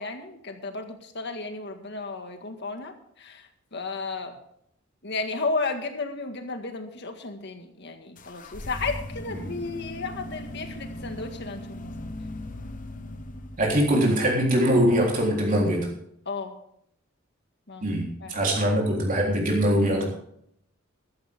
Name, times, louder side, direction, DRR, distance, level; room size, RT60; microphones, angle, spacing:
voice 1, 0.0-4.3 5.0-11.9 16.3-16.6 17.7-17.9 18.2-18.4, left 3 dB, 60° left, 6 dB, 1.8 m, -33 dB
sound 1, 8.2-14.1, left 1 dB, 40° left, 1.1 m, -38 dB
voice 2, 13.6-15.9 17.8-20.1, equal, 40° right, -2 dB, 3.6 m, -22 dB
14.5 x 13.5 x 3.6 m, 0.71 s
head